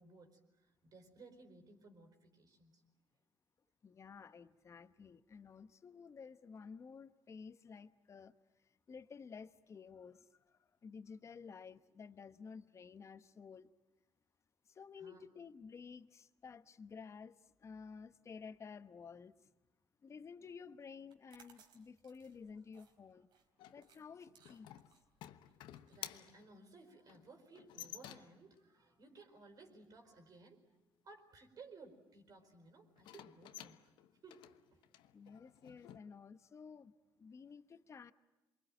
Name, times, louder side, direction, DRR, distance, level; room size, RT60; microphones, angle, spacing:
voice 1, 0.0-2.8 15.0-15.2 25.6-30.6 31.0-33.8 34.2-34.5 34.7-34.8, right 3 dB, 50° right, 5 dB, 4.5 m, -59 dB
voice 2, 3.8-8.3 8.9-13.7 14.7-19.4 20.0-23.3 23.7-24.7 35.1-38.1, left 5 dB, 40° left, 13 dB, 1.1 m, -53 dB
sound 1, 21.0-26.7, right 7 dB, 80° right, 3.8 m, -68 dB
sound 2, 23.6-28.5 33.0-36.0, left 12 dB, 90° left, 1.1 m, -53 dB
28.5 x 23.5 x 9.0 m, 1.0 s
cardioid pair, 105°, 8 cm